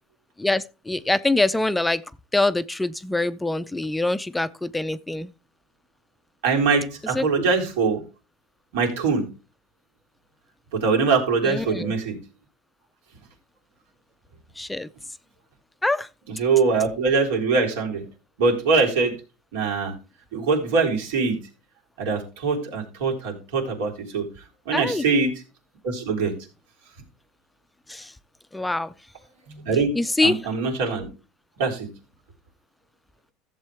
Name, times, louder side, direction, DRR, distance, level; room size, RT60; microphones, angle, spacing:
voice 1, 0.4-2.0 2.3-5.3 7.1-7.2 11.4-11.9 14.6-14.9 15.8-16.1 24.7-25.0 27.9-28.1 28.5-28.9 30.0-30.4, left 2 dB, 5° left, 0.4 m, -24 dB
voice 2, 6.4-8.0 8.7-9.2 10.7-12.2 16.3-18.0 18.4-19.1 19.5-20.0 20.3-21.4 22.0-24.3 24.7-25.3 25.8-26.3 29.5-29.9 30.2-31.1 31.6-31.9, right 4 dB, 85° right, 3.6 m, -23 dB
14.5 x 7.5 x 3.4 m
cardioid pair, 145°, 0 cm